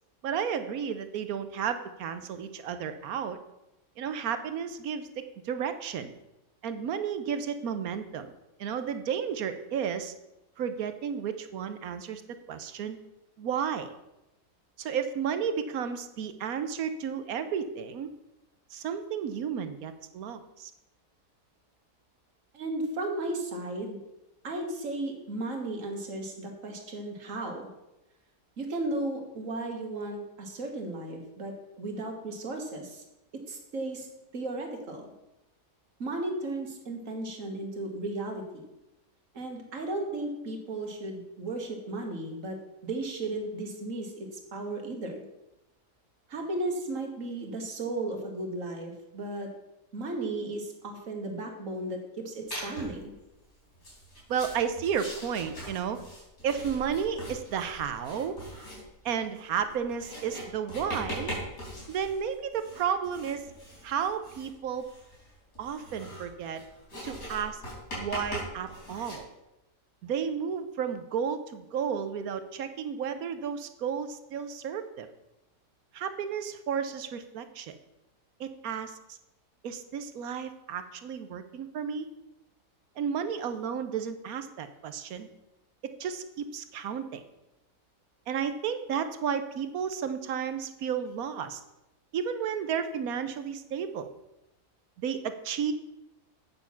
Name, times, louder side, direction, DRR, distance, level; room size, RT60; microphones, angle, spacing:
voice 1, 0.2-3.4 4.0-6.1 6.6-8.3 8.6-10.1 10.6-12.2 12.5-13.0 13.4-13.9 14.8-18.1 18.7-20.7 54.3-56.0 56.4-58.4 59.0-61.3 61.9-63.5 63.8-64.9 65.6-66.6 67.0-67.6 68.0-69.3 70.0-75.1 75.9-77.8 78.4-79.0 79.6-82.1 83.0-85.3 85.8-87.2 88.3-91.6 92.1-94.1 95.0-95.7, right 7 dB, 65° right, 10 dB, 1.1 m, -32 dB
voice 2, 22.5-24.0 24.4-27.7 28.6-33.0 33.3-34.1 34.3-35.1 36.0-38.6 39.3-42.6 42.8-45.2 46.3-49.5 49.9-53.1, right 2 dB, 50° right, 3 dB, 1.9 m, -35 dB
Writing, 52.5-53.0 53.7-69.2, equal, 60° left, 4.7 m, -41 dB
8.4 x 6.8 x 5.7 m, 0.93 s
omnidirectional pair, 1.8 m